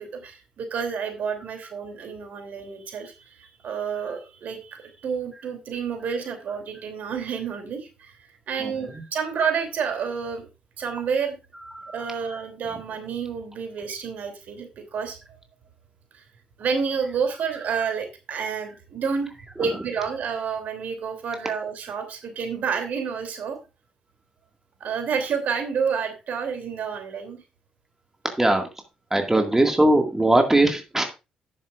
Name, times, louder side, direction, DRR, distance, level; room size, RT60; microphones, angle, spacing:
voice 1, 0.0-8.1 8.5-10.5 10.8-11.4 11.9-15.2 16.1-16.2 16.6-19.3 19.6-23.6 24.8-27.4, right 6 dB, 55° right, 6 dB, 3.0 m, -29 dB
voice 2, 8.6-9.0 11.6-12.1 12.3-12.4 19.6-19.7 28.4-28.7 29.1-31.0, right 1 dB, 10° right, 4 dB, 2.0 m, -21 dB
12.5 x 10.5 x 2.5 m, 0.28 s
figure-of-eight pair, 40°, 3 cm